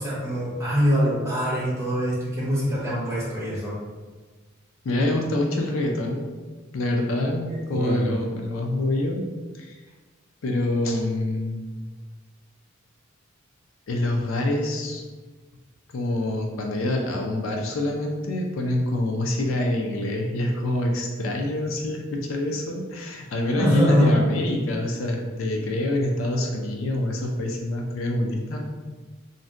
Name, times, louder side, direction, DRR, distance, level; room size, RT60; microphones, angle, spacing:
voice 1, 0.0-3.8 7.7-8.2 23.6-24.1, equal, 15° right, -7 dB, 0.9 m, -23 dB
voice 2, 4.8-6.3 6.7-9.2 9.5-9.7 10.4-11.7 13.9-15.0 15.9-28.6, left 1 dB, 70° left, 2 dB, 0.4 m, -26 dB
2.5 x 2.1 x 3.6 m, 1.3 s
head